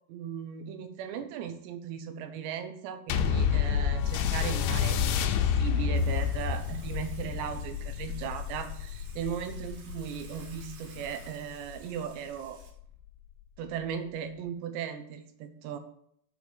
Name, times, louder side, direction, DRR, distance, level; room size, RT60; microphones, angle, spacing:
voice 1, 0.1-5.0 5.3-12.6 13.6-15.8, right 8 dB, 85° right, 8 dB, 3.2 m, -37 dB
sound 1, 3.1-11.9 12.6-12.7, left 7 dB, 75° left, 2.6 m, -29 dB
Water / Water tap faucet / Sink (filling or washing), 5.9-12.7, right 4 dB, 60° right, 3.4 m, -54 dB
7.3 x 6.0 x 7.1 m, 0.68 s
omnidirectional pair, 5.0 m